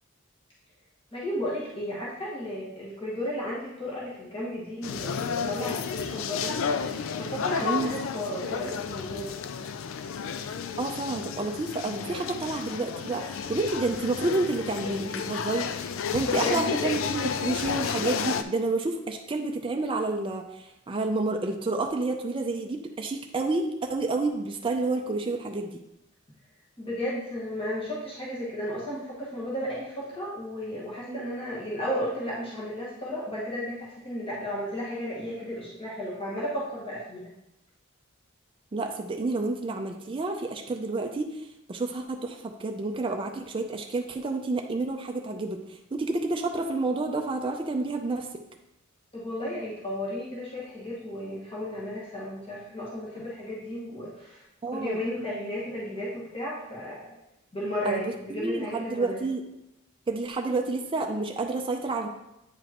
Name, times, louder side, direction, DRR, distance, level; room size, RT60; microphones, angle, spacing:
voice 1, 1.1-6.6 7.2-9.4 16.2-17.0 26.8-37.3 49.1-54.4 54.7-57.2 57.5-59.2, left 1 dB, 25° left, -7 dB, 1.5 m, -34 dB
sound 1, 4.8-18.4, left 6 dB, 70° left, 0.4 m, -32 dB
voice 2, 10.8-15.7 16.1-25.8 31.1-31.3 38.7-41.3 41.7-45.6 45.9-48.3 54.6-55.0 57.8-59.4 60.1-62.1, right 3 dB, 25° right, 3 dB, 0.4 m, -29 dB
8.7 x 5.0 x 2.9 m, 0.90 s
head